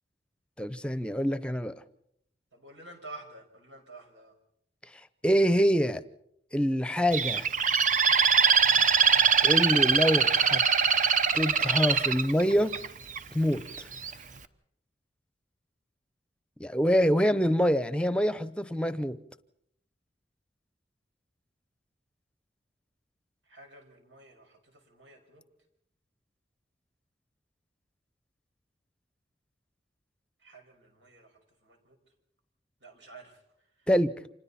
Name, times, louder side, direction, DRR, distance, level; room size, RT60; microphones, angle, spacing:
voice 1, 0.6-1.7 5.2-6.0 6.5-7.5 9.4-10.6 11.3-12.7 13.3-13.9 16.6-19.2 33.9-34.1, equal, 5° left, 0.8 m, -25 dB
voice 2, 2.5-4.3 23.5-24.6 24.9-25.4 30.4-31.3 31.6-32.0 32.8-33.3, right 2 dB, 90° right, 5.8 m, -49 dB
Bird, 7.1-13.2 13.7-14.1, right 6 dB, 45° right, 0.9 m, -23 dB
30.0 x 26.5 x 4.3 m
head